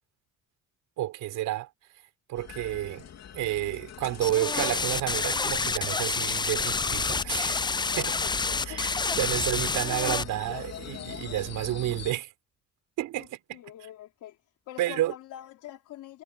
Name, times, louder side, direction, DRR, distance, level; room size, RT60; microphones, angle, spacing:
voice 1, 1.0-1.7 2.3-3.0 3.3-7.7 8.0-8.2 8.6-12.3 13.0-13.6 14.8-15.1, right 14 dB, 90° right, 5.7 m, -30 dB
sound 1, 2.3-12.1, left 8 dB, 60° left, 3.2 m, -43 dB
sound 2, 4.2-10.2, left 4 dB, 15° left, 0.4 m, -28 dB
voice 2, 13.5-14.4 14.7-16.2, left 12 dB, 85° left, 3.6 m, -44 dB
cardioid pair, 90°, 30 cm